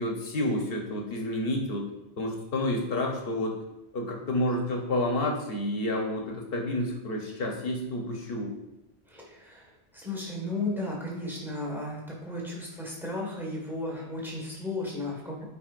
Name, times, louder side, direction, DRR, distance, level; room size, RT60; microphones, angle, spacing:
voice 1, 0.0-1.9 2.2-3.6 3.9-8.5, left 1 dB, 65° left, 2 dB, 1.1 m, -29 dB
voice 2, 9.1-9.7 9.9-15.4, left 2 dB, ahead, -3 dB, 1.6 m, -34 dB
8.7 x 4.3 x 2.5 m, 0.91 s
omnidirectional pair, 1.1 m